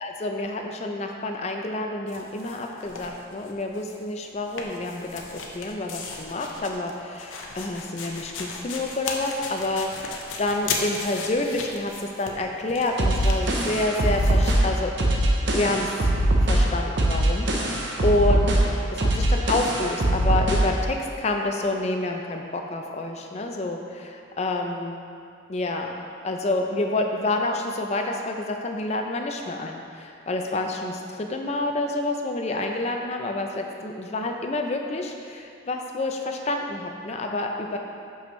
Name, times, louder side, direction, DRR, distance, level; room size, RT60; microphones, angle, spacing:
voice 1, 0.0-11.9 12.2-14.9 15.4-15.9 16.4-18.6 18.9-25.0 25.5-25.9 26.2-37.8, left 2 dB, 35° left, 3 dB, 0.4 m, -28 dB
sound 1, 2.1-4.0 4.2-14.5, left 4 dB, 80° left, 0.6 m, -36 dB
sound 2, 13.0-20.8, right 1 dB, 60° right, 0.7 m, -22 dB
6.0 x 5.6 x 3.1 m, 2.5 s
head